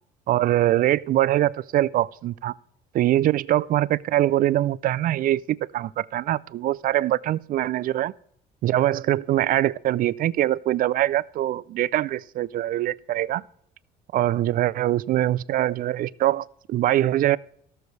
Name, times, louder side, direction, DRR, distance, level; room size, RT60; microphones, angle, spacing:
voice 1, 0.3-2.5 2.9-5.4 5.7-8.1 8.6-13.4 14.1-17.4, right 14 dB, 55° right, 0.4 m, -23 dB
18.0 x 6.8 x 3.2 m
cardioid pair, 110°, 17 cm